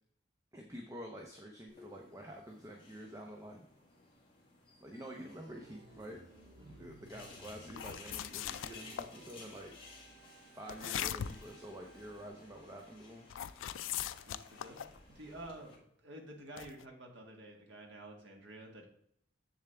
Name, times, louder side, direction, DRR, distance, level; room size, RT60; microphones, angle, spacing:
voice 1, 0.5-3.6 4.8-6.2 6.7-9.7 10.5-13.3, equal, 15° right, 1 dB, 0.7 m, -48 dB
sound 1, 1.7-15.8, left 3 dB, 25° left, 1.8 m, -57 dB
Organ, 4.9-12.3, right 2 dB, 55° right, 2.0 m, -59 dB
voice 2, 6.6-6.9 14.3-18.9, right 1 dB, 70° right, 1 dB, 1.7 m, -51 dB
sound 2, 7.7-9.1 10.7-11.5 13.3-15.0 16.6-16.8, left 10 dB, 85° left, 0.3 m, -40 dB
7.2 x 7.0 x 3.4 m, 0.72 s
head